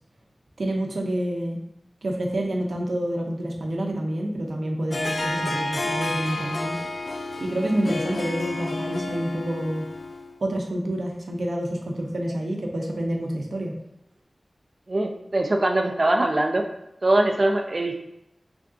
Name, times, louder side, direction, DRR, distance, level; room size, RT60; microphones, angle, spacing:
voice 1, 0.6-1.6 2.0-6.8 7.4-9.8 10.4-13.7, right 1 dB, 90° right, 1 dB, 0.6 m, -28 dB
Harp, 4.9-10.4, left 2 dB, 70° left, 0.3 m, -30 dB
voice 2, 14.9-16.6 17.0-17.9, right 1 dB, 50° right, 2 dB, 0.5 m, -22 dB
3.4 x 2.5 x 3.7 m, 0.85 s
wide cardioid pair, 75°, 0 cm